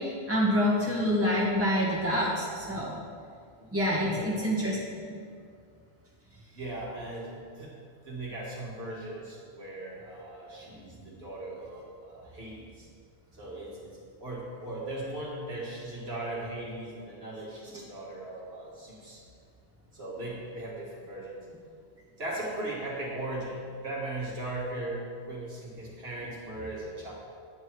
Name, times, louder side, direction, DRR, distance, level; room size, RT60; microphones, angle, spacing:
voice 1, 0.0-2.9 3.7-5.1 10.7-10.8 11.1-11.2, equal, 10° right, -6 dB, 2.0 m, -27 dB
voice 2, 6.5-7.8 8.1-12.9 13.4-19.2 19.9-21.4 22.2-27.1, right 1 dB, 55° right, -5 dB, 2.3 m, -38 dB
9.6 x 9.1 x 4.8 m, 2.3 s
omnidirectional pair, 1.2 m